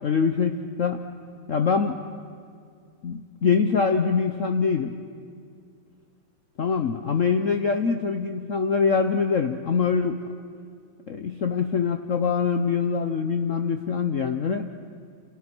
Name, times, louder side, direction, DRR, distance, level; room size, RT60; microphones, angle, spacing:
voice 1, 0.0-1.1 1.5-2.0 3.0-4.9 6.6-10.3 11.1-14.7, left 5 dB, 50° left, 7 dB, 1.0 m, -24 dB
30.0 x 27.5 x 6.1 m, 2.3 s
omnidirectional pair, 2.1 m